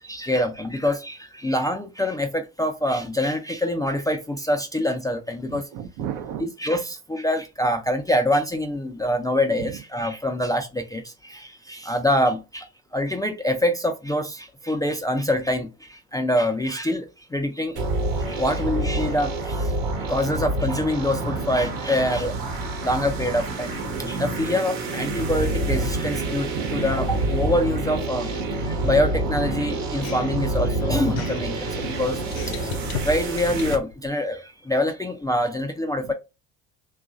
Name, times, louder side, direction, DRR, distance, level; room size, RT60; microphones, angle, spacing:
voice 1, 0.0-5.7 6.4-17.8 18.2-19.7 20.0-22.3 22.8-32.7 33.0-36.1, left 1 dB, 10° left, 0.3 m, -25 dB
voice 2, 5.5-6.5 26.5-26.9, right 9 dB, 60° right, 0.7 m, -33 dB
sound 1, 17.8-33.8, right 2 dB, 75° right, 1.1 m, -27 dB
sound 2, 29.8-34.1, left 7 dB, 70° left, 0.6 m, -37 dB
3.0 x 2.4 x 2.3 m
hypercardioid pair, 65°, 41 cm